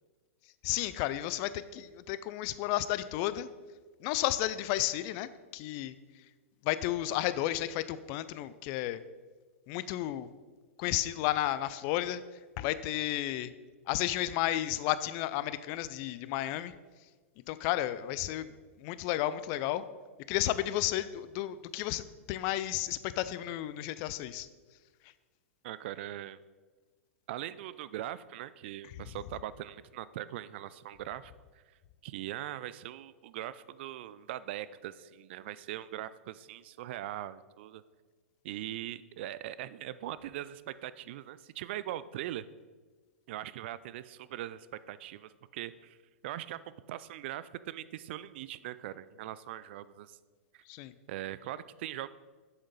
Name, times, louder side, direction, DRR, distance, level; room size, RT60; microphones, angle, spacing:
voice 1, 0.6-3.5 4.0-5.9 6.6-9.0 9.7-10.3 10.8-12.2 12.6-13.5 13.9-16.7 17.5-18.5 18.8-19.8 20.3-24.5 50.7-50.9, left 14 dB, 45° left, 15 dB, 0.4 m, -32 dB
voice 2, 25.6-26.4 27.3-31.3 32.0-37.8 38.4-42.5 43.3-46.0 46.2-46.6 46.9-50.2 50.5-50.6 51.1-52.1, right 13 dB, 55° right, 16 dB, 0.4 m, -41 dB
7.8 x 7.5 x 4.0 m, 1.4 s
hypercardioid pair, 100°, 7 cm